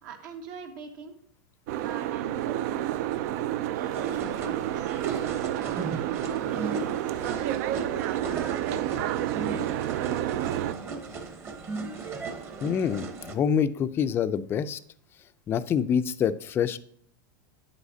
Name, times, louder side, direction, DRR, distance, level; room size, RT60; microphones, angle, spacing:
voice 1, 0.0-1.2 1.7-5.2 5.4-7.2 7.7-11.2, right 4 dB, 70° right, 3 dB, 1.6 m, -44 dB
Boat Water vehicle, 1.7-10.7, right 12 dB, 55° right, 0.4 m, -30 dB
sound 1, 3.9-13.3, right 3 dB, 25° right, 0.9 m, -37 dB
voice 2, 12.6-14.8 15.5-16.8, left 8 dB, 20° left, 13 dB, 0.4 m, -26 dB
9.1 x 8.1 x 2.7 m, 0.64 s
supercardioid pair, 145°, 10 cm